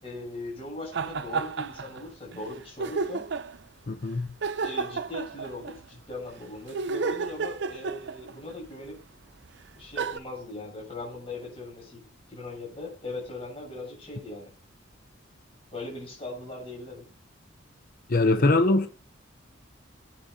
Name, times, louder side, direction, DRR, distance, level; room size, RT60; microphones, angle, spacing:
voice 1, 0.0-3.3 4.6-9.0 9.7-12.0 12.3-14.5 15.7-17.1 18.2-18.9, left 2 dB, 30° left, 7.4 m, -39 dB
sound 1, 0.9-2.0 2.3-2.4 2.8-3.6 4.4-5.8 6.7-8.5 9.4-9.5 10.0-10.2, right 4 dB, 60° right, 0.6 m, -31 dB
voice 2, 3.9-4.3 18.1-18.9, left 2 dB, 45° left, 0.7 m, -22 dB
21.0 x 9.3 x 2.7 m
head